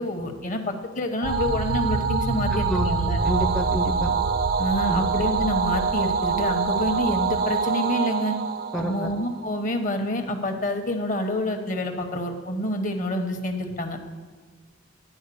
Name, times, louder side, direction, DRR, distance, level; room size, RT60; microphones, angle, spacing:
voice 1, 0.0-3.2 4.6-8.3 8.8-14.0, left 1 dB, 40° left, 5 dB, 1.0 m, -27 dB
sound 1, 1.2-9.8, right 5 dB, 45° right, 0.4 m, -26 dB
sound 2, 1.2-7.5, right 3 dB, 85° right, 0.7 m, -30 dB
voice 2, 2.5-2.9 3.2-4.1 4.9-5.1 8.7-9.1, equal, 5° left, 0 dB, 0.5 m, -28 dB
11.0 x 4.5 x 6.9 m, 1.6 s
head